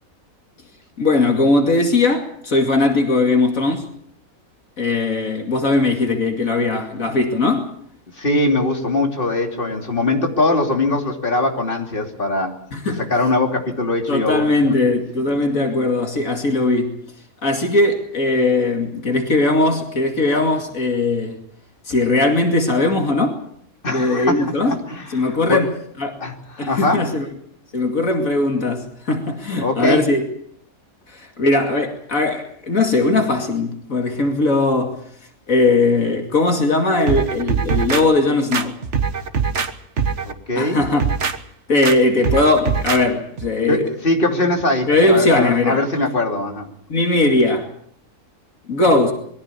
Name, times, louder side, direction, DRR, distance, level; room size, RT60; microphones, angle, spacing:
voice 1, 1.0-3.9 4.8-7.7 12.7-13.1 14.1-16.9 17.4-21.4 21.9-23.4 23.9-24.8 25.1-25.7 26.0-26.2 26.6-27.3 27.7-30.2 31.1-35.0 35.5-38.8 40.6-41.0 41.7-43.8 44.9-45.8 46.9-47.7 48.7-49.1, left 2 dB, 70° left, 2.9 m, -19 dB
voice 2, 8.2-12.6 13.0-14.5 23.8-25.7 26.2-27.0 29.6-30.0 40.2-40.8 43.7-46.7, left 2 dB, 40° left, 3.2 m, -21 dB
sound 1, 37.1-38.0 38.5-39.7 40.0-40.3 40.8-41.4 41.8-42.0 42.2-43.0 43.4-43.5, right 6 dB, 55° right, 1.6 m, -22 dB
22.5 x 16.0 x 8.4 m
omnidirectional pair, 1.5 m